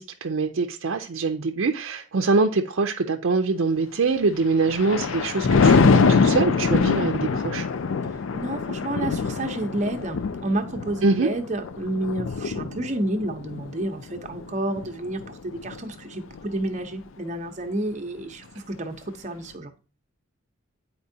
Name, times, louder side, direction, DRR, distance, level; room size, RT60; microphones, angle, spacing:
voice 1, 0.0-7.7 11.0-11.3, right 4 dB, 70° right, 0.5 m, -24 dB
Thunder, 4.3-15.8 16.3-16.6, left 4 dB, 75° left, 0.4 m, -24 dB
voice 2, 8.3-19.7, right 1 dB, 35° right, 0.8 m, -30 dB
9.6 x 4.4 x 2.7 m
head